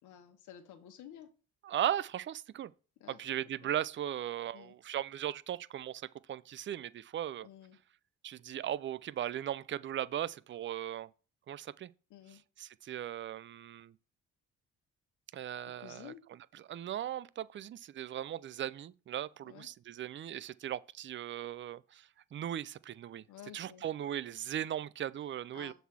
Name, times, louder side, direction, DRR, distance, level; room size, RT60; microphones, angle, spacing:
voice 1, 0.0-1.3 3.0-3.2 3.6-3.7 4.5-4.7 7.4-7.8 12.1-12.4 15.8-16.2 19.4-19.7 23.3-23.8 25.5-25.7, left 10 dB, 80° left, 1.1 m, -52 dB
voice 2, 1.6-2.7 3.2-7.5 8.2-11.1 11.5-11.9 12.6-13.9 15.3-16.1 16.5-23.2 23.5-25.7, right 11 dB, 40° right, 0.4 m, -38 dB
6.9 x 4.0 x 6.2 m
cardioid pair, 90°, 30 cm